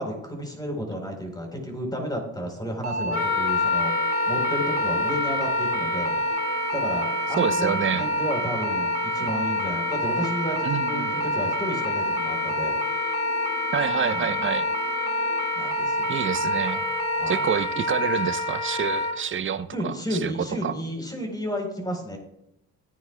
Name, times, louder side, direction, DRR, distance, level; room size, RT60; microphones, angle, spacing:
voice 1, 0.0-6.2 6.7-12.8 14.1-14.4 15.6-16.2 16.5-16.8 17.1-17.4 19.7-22.2, equal, 15° left, 2 dB, 3.9 m, -32 dB
sound 1, 2.8-17.6, right 3 dB, 65° right, 1.6 m, -30 dB
sound 2, 3.0-15.5, right 6 dB, 80° right, 2.4 m, -48 dB
Wind instrument woodwind instrument, 3.1-19.2, left 3 dB, 50° left, 1.7 m, -28 dB
voice 2, 7.4-8.0 10.6-11.1 13.7-14.7 16.1-16.8 17.3-20.7, right 7 dB, 40° right, 12 dB, 0.7 m, -27 dB
15.5 x 9.4 x 2.3 m, 0.81 s
cardioid pair, 90°, 30 cm